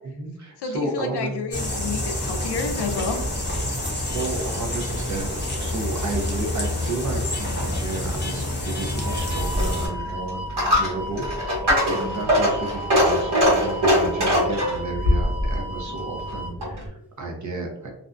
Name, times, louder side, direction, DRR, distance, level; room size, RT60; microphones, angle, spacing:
voice 1, 0.0-1.3 4.1-5.3 5.6-10.4 10.7-11.3 12.0-17.9, right 2 dB, 45° right, 1 dB, 0.6 m, -32 dB
voice 2, 0.6-3.2 12.2-12.3, left 4 dB, 75° left, 6 dB, 0.5 m, -30 dB
sound 1, 1.5-9.9, left 1 dB, 25° left, 0.7 m, -28 dB
sound 2, 8.9-16.5, equal, 5° right, 0.5 m, -35 dB
Coin (dropping), 9.4-16.9, equal, 80° right, 1.2 m, -22 dB
2.6 x 2.2 x 2.4 m, 0.80 s
wide cardioid pair, 90°, 40 cm